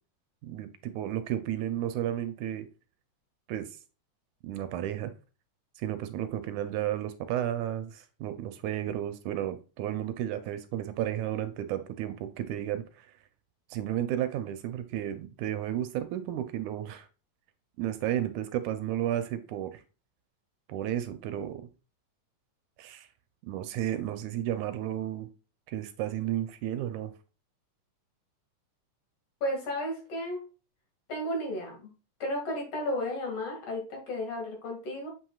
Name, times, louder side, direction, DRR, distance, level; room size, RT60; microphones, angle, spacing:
voice 1, 0.4-2.7 3.5-3.7 4.4-5.1 5.8-13.1 13.7-17.1 17.8-19.8 20.7-21.6 22.8-23.1 23.5-25.3 25.7-27.1, right 11 dB, 80° right, 2.1 m, -33 dB
voice 2, 29.4-30.4 31.1-31.9 32.2-35.1, left 1 dB, 55° left, 3.1 m, -33 dB
7.7 x 5.9 x 2.3 m
omnidirectional pair, 3.6 m